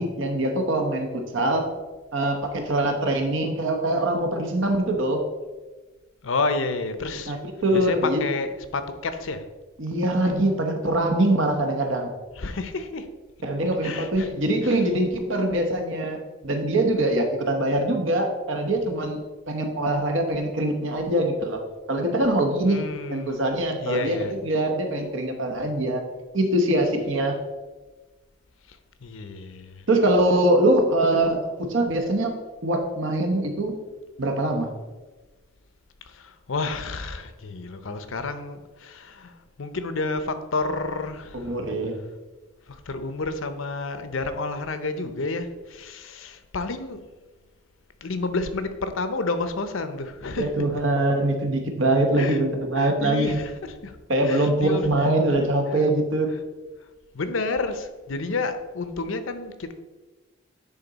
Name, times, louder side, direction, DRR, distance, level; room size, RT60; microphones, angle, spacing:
voice 1, 0.0-1.7 2.1-5.2 7.2-8.2 9.8-12.1 13.4-21.6 21.9-22.8 23.1-26.0 26.3-27.3 29.9-32.3 32.6-33.7 34.2-34.7 41.3-42.0 50.4-53.4 54.1-56.3, right 1 dB, 70° right, 4 dB, 1.0 m, -23 dB
voice 2, 6.2-7.3 7.7-9.4 12.4-13.1 13.8-14.3 14.6-14.8 22.6-23.4 23.8-24.3 29.0-29.8 36.1-39.3 39.6-41.5 42.7-47.0 48.0-50.6 52.2-52.4 52.8-54.0 54.3-54.9 55.7-55.9 57.1-59.7, left 3 dB, 75° left, 10 dB, 0.6 m, -30 dB
9.6 x 3.7 x 4.0 m, 1.2 s
head